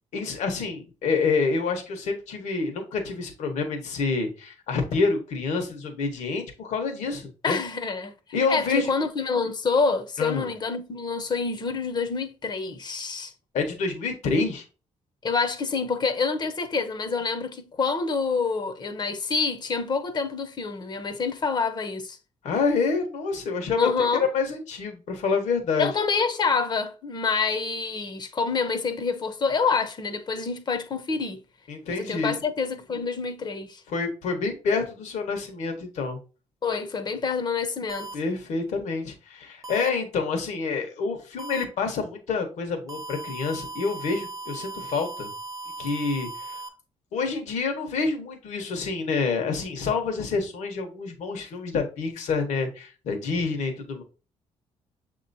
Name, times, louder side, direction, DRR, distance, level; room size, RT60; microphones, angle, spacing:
voice 1, 0.1-7.6 8.3-8.9 10.2-10.5 13.5-14.6 22.4-23.9 24.3-25.9 31.7-32.4 33.9-36.2 38.1-45.3 45.8-46.6 47.1-54.0, left 4 dB, 80° left, 1.3 m, -27 dB
voice 2, 7.4-8.2 8.5-13.3 15.2-22.2 23.8-24.3 25.8-31.4 31.9-33.8 36.6-38.1, left 4 dB, 35° left, 0.7 m, -27 dB
sound 1, 37.9-38.1 39.6-39.9 41.4-41.6 42.9-46.7, right 2 dB, 30° right, 0.7 m, -37 dB
6.8 x 2.9 x 2.6 m
cardioid pair, 115°, 12 cm